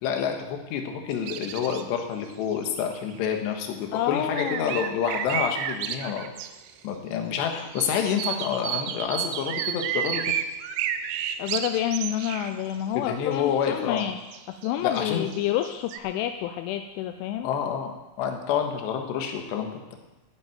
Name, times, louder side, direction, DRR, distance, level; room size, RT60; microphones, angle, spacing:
voice 1, 0.0-6.2 6.8-10.2 12.9-14.1 14.8-15.3 17.4-20.0, left 7 dB, 70° left, 4 dB, 3.2 m, -28 dB
sound 1, 1.1-2.0 2.3-2.4 2.7-3.4 4.4-6.7 7.7-12.5 13.6-13.7 14.0-16.0, right 9 dB, 90° right, 3.5 m, -31 dB
voice 2, 3.9-4.9 11.4-14.2 14.5-17.5, left 11 dB, 85° left, 7 dB, 2.8 m, -29 dB
12.5 x 7.6 x 9.0 m, 1.0 s
omnidirectional pair, 6.0 m